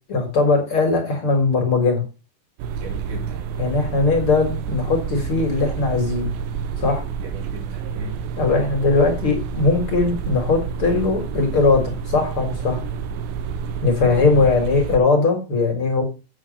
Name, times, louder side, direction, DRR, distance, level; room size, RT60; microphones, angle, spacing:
voice 1, 0.1-2.0 3.6-6.3 6.8-7.0 8.4-12.8 13.8-16.0, left 3 dB, 45° left, 2.1 m, -19 dB
sound 1, 2.6-15.0, right 6 dB, 90° right, 2.5 m, -29 dB
voice 2, 2.8-3.4 7.2-8.2 14.0-14.6, right 2 dB, 60° right, 4.3 m, -36 dB
8.1 x 6.1 x 5.0 m
omnidirectional pair, 4.1 m